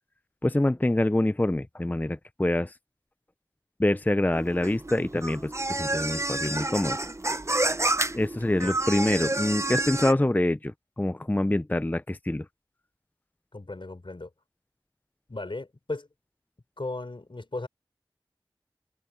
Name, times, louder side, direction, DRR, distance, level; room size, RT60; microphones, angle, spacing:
voice 1, 0.4-2.8 3.8-7.0 8.1-12.5, left 1 dB, 20° left, 0.5 m, -26 dB
sound 1, 4.3-10.1, right 2 dB, 35° right, 0.7 m, -29 dB
voice 2, 13.5-14.3 15.3-16.1 16.8-17.7, left 2 dB, 80° left, 5.0 m, -36 dB
wide cardioid pair, 45°, 8 cm